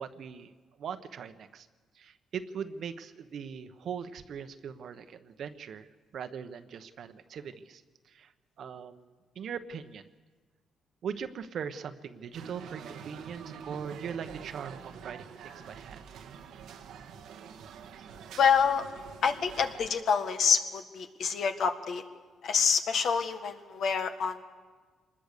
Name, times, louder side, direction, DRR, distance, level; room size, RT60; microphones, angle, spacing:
voice 1, 0.0-1.7 1.9-5.9 6.1-8.3 8.6-9.1 9.3-10.1 11.0-16.0, right 7 dB, 65° right, 9 dB, 1.1 m, -40 dB
sound 1, 12.3-19.9, right 7 dB, 85° right, 1.3 m, -46 dB
voice 2, 18.4-18.8 19.2-22.0 22.4-24.4, left 6 dB, 65° left, 7 dB, 1.7 m, -27 dB
24.5 x 20.0 x 6.8 m, 1.4 s
cardioid pair, 100°, 0 cm